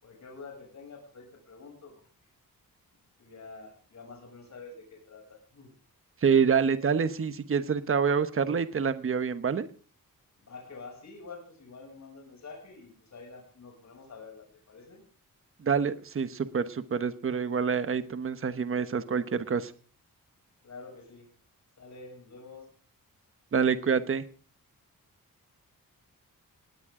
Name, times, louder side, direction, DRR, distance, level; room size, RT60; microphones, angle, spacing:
voice 1, 0.0-2.1 3.2-5.7 10.4-15.0 20.6-21.3 21.8-22.7, left 4 dB, 50° left, 1 dB, 7.1 m, -47 dB
voice 2, 6.2-9.7 15.6-19.7 23.5-24.2, right 6 dB, 40° right, 12 dB, 1.1 m, -27 dB
19.0 x 19.0 x 3.8 m, 0.40 s
wide cardioid pair, 160°, 35 cm